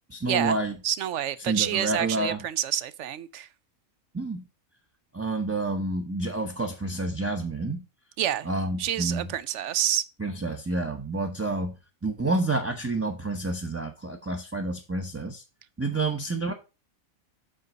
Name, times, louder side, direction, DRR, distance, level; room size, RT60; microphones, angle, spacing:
voice 1, 0.1-0.7 1.4-2.4 4.1-4.4 5.1-7.8 8.4-9.3 10.2-11.7 12.0-15.4 15.8-16.5, right 2 dB, 15° right, 0.7 m, -29 dB
voice 2, 0.8-3.5 8.2-8.5 8.8-10.1, right 11 dB, 70° right, 0.8 m, -28 dB
7.5 x 3.9 x 6.1 m
omnidirectional pair, 1.4 m